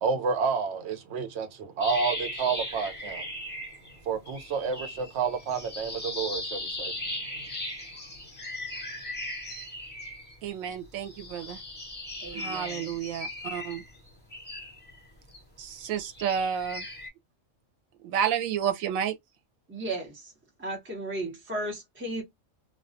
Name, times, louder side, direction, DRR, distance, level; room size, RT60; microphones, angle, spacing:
voice 1, 0.0-3.3 4.0-6.9, right 5 dB, 65° right, 0.9 m, -30 dB
sound 1, 1.8-4.0 4.3-10.5 11.0-15.4 15.8-17.1, left 1 dB, 10° left, 1.2 m, -38 dB
voice 2, 10.4-11.6 12.3-13.8 15.6-16.9 18.0-19.1, right 8 dB, 85° right, 1.0 m, -30 dB
voice 3, 12.2-12.9 19.7-20.3 20.6-22.2, right 1 dB, 10° right, 0.7 m, -35 dB
2.3 x 2.2 x 2.5 m
omnidirectional pair, 1.4 m